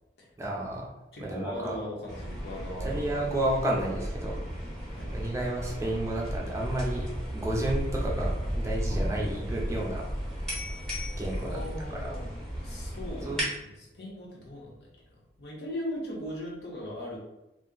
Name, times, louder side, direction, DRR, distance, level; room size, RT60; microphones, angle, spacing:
voice 1, 0.4-0.9 1.2-1.8 2.8-4.4 5.1-7.1 7.3-10.0 11.2-11.6 11.9-12.1 13.2-13.5, right 1 dB, 15° right, -3 dB, 0.4 m, -31 dB
voice 2, 1.1-3.0 4.9-5.1 8.9-9.4 11.3-12.3 12.6-17.2, left 1 dB, 65° left, -4 dB, 0.9 m, -39 dB
sound 1, 2.1-13.4, equal, ahead, 0.8 m, -34 dB
2.5 x 2.1 x 3.7 m, 0.97 s
head